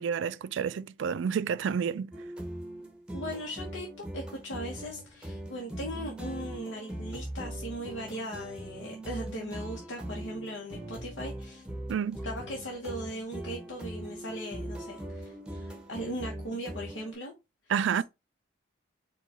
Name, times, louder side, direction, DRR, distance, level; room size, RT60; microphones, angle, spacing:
voice 1, 0.0-2.1 11.9-12.2 17.7-18.0, right 7 dB, 75° right, 0.3 m, -29 dB
sound 1, 2.1-17.1, right 1 dB, 5° right, 0.8 m, -40 dB
voice 2, 3.1-11.6 12.2-17.3, equal, 80° left, 1.0 m, -39 dB
4.5 x 2.3 x 4.1 m
head